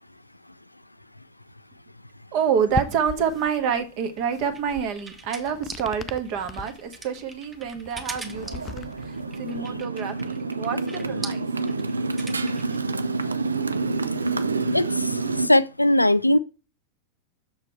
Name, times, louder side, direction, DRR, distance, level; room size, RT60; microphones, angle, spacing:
voice 1, 2.3-11.4, right 7 dB, 45° right, 1.5 m, -27 dB
sound 1, 2.7-9.8, left 5 dB, 20° left, 0.5 m, -39 dB
sound 2, 4.0-12.8, right 3 dB, 15° right, 1.3 m, -41 dB
Motorcycle, 8.3-15.5, right 3 dB, 75° right, 0.6 m, -28 dB
voice 2, 14.7-16.4, left 1 dB, 85° left, 0.4 m, -20 dB
6.8 x 6.6 x 4.4 m
figure-of-eight pair, 90°, 0 cm